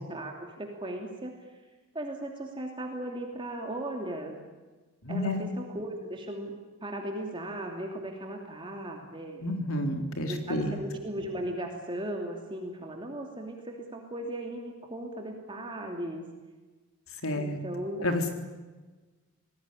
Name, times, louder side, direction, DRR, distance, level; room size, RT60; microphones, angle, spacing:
voice 1, 0.0-1.3 1.9-4.4 5.1-9.5 10.3-16.2 17.4-18.1, right 1 dB, 20° right, 2 dB, 2.8 m, -37 dB
voice 2, 5.0-5.4 9.4-10.8 17.2-17.6 18.0-18.3, left 1 dB, 75° left, 5 dB, 3.8 m, -30 dB
26.5 x 19.5 x 9.9 m, 1.3 s
head